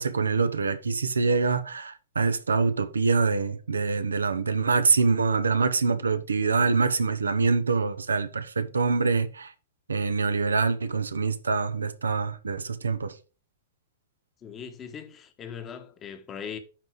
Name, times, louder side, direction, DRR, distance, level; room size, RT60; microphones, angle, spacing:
voice 1, 0.0-9.5 9.9-13.1, right 4 dB, 85° right, 0.9 m, -25 dB
voice 2, 14.4-16.6, left 7 dB, 25° left, 1.4 m, -39 dB
10.5 x 4.0 x 4.7 m
hypercardioid pair, 110°, 0 cm